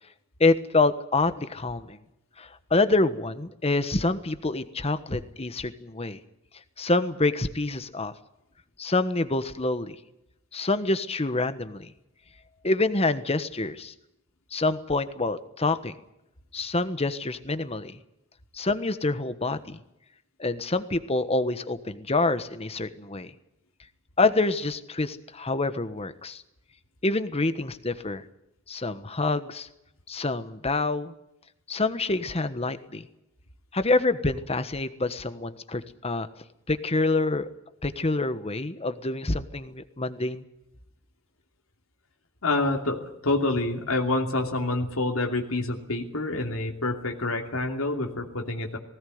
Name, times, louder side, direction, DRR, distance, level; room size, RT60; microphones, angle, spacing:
voice 1, 0.4-2.0 2.4-6.2 6.8-8.1 8.8-10.0 10.5-11.9 12.6-13.9 14.5-15.9 16.5-18.0 18.5-19.8 20.4-23.3 24.2-26.4 27.0-28.2 28.7-29.7 30.1-31.1 31.7-33.1 33.7-36.3 36.7-37.5 37.8-40.4, left 2 dB, 30° left, 11 dB, 1.3 m, -26 dB
voice 2, 42.4-48.8, left 2 dB, 85° left, 2 dB, 2.8 m, -27 dB
19.5 x 18.0 x 9.5 m, 0.84 s
head